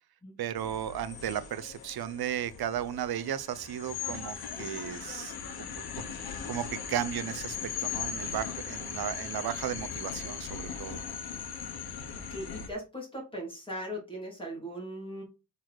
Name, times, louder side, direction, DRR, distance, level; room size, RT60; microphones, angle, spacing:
voice 1, 0.4-5.8 6.2-7.6 7.8-11.0, right 10 dB, 85° right, 0.7 m, -35 dB
sound 1, 0.6-12.7, left 7 dB, 85° left, 1.4 m, -39 dB
voice 2, 12.3-15.2, equal, 15° left, 3.1 m, -39 dB
6.2 x 4.1 x 6.2 m
wide cardioid pair, 180°, 36 cm